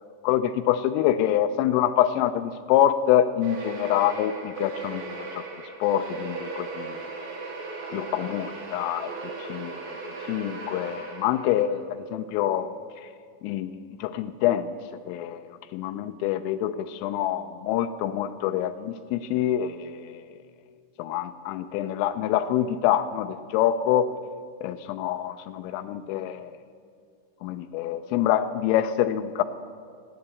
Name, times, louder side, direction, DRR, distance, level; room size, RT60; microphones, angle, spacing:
voice 1, 0.2-5.4 5.8-7.0 7.9-9.1 9.4-9.7 10.2-12.8 13.0-13.1 13.4-14.7 15.1-20.3 21.0-24.1 24.6-26.6 27.4-29.4, left 11 dB, 90° left, 8 dB, 3.2 m, -26 dB
sound 1, 3.4-11.7, right 4 dB, 75° right, 4.5 m, -37 dB
16.5 x 9.8 x 8.3 m, 2.3 s
omnidirectional pair, 5.7 m